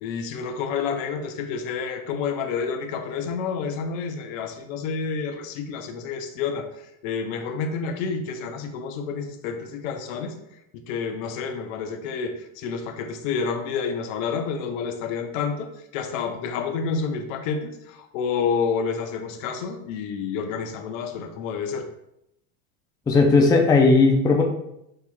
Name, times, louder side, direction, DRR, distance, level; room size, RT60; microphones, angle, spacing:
voice 1, 0.0-6.7 7.0-10.3 10.7-21.9, left 5 dB, 60° left, 7 dB, 0.7 m, -29 dB
voice 2, 23.1-24.4, left 3 dB, 10° left, 1 dB, 0.4 m, -16 dB
6.5 x 2.8 x 2.3 m, 0.80 s
hypercardioid pair, 105°, 43 cm